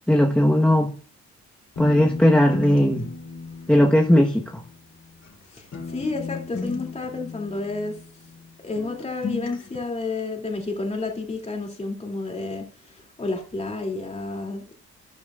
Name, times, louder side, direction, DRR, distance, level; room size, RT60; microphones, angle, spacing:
voice 1, 0.1-0.9 1.8-3.0 3.7-4.4, equal, 5° left, 1.2 m, -17 dB
sound 1, 1.8-5.4 5.7-8.5 8.7-9.8, left 4 dB, 60° left, 3.4 m, -35 dB
voice 2, 5.5-8.0 8.6-14.8, left 3 dB, 20° left, 2.8 m, -30 dB
13.0 x 11.5 x 2.5 m
cardioid pair, 90°, 29 cm